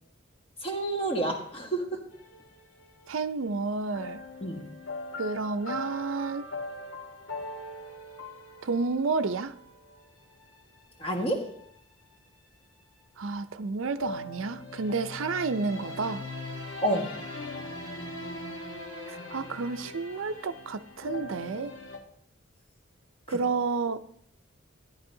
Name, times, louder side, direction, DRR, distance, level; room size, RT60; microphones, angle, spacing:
voice 1, 0.6-2.0 4.4-4.6 11.0-11.5 16.8-17.1, right 1 dB, 30° left, 2 dB, 1.6 m, -29 dB
sound 1, 2.1-3.2 3.9-12.1 14.0-22.0, left 2 dB, 75° left, 1.7 m, -41 dB
voice 2, 3.1-4.2 5.2-6.4 8.6-9.5 13.2-16.2 19.1-21.7 23.3-24.0, right 4 dB, 75° right, 11 dB, 0.5 m, -30 dB
12.5 x 10.5 x 2.7 m, 0.65 s
head